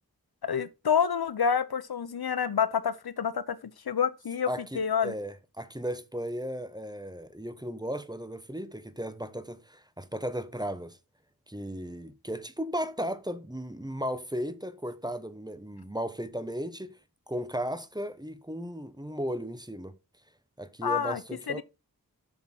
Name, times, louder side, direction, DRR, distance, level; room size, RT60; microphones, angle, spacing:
voice 1, 0.4-4.5 4.7-5.1 20.8-21.2 21.5-21.6, left 7 dB, 80° left, 0.7 m, -28 dB
voice 2, 4.5-11.0 11.5-17.0 17.3-19.9 20.6-21.6, equal, 10° right, 0.9 m, -35 dB
7.3 x 6.1 x 4.3 m
wide cardioid pair, 50°, 37 cm